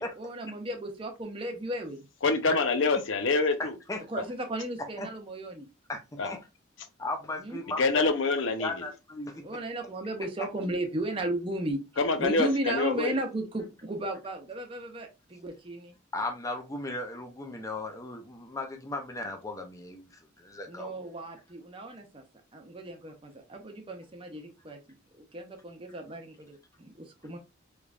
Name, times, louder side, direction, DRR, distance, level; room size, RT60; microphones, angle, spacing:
voice 1, 0.2-2.1 4.1-5.7 7.4-7.6 9.4-11.8 12.2-16.0 20.7-22.2 22.5-25.0 25.3-27.4, right 1 dB, 25° right, 0.6 m, -35 dB
voice 2, 2.2-3.8 6.2-6.4 7.8-8.9 12.0-13.2, left 3 dB, 70° left, 0.6 m, -26 dB
voice 3, 5.9-6.4 7.0-8.0 8.6-9.4 16.1-20.9, left 2 dB, 15° left, 0.5 m, -36 dB
3.4 x 3.0 x 2.4 m
head